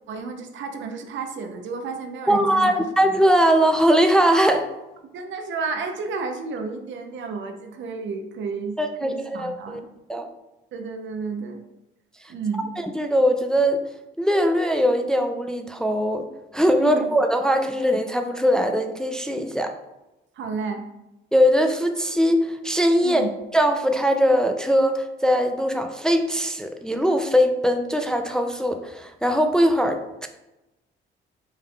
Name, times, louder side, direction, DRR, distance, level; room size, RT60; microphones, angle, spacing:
voice 1, 0.1-2.8 5.1-9.9 10.7-11.6 12.3-12.7 16.8-17.1 20.4-20.8 23.0-23.3, right 4 dB, 70° right, 5 dB, 0.7 m, -31 dB
voice 2, 2.3-4.7 8.8-9.8 10.1-10.3 12.8-13.8 14.2-16.3 16.5-19.7 21.3-23.3 23.5-30.3, equal, 5° left, 5 dB, 0.3 m, -21 dB
5.4 x 3.3 x 2.3 m, 0.98 s
cardioid pair, 90°, 20 cm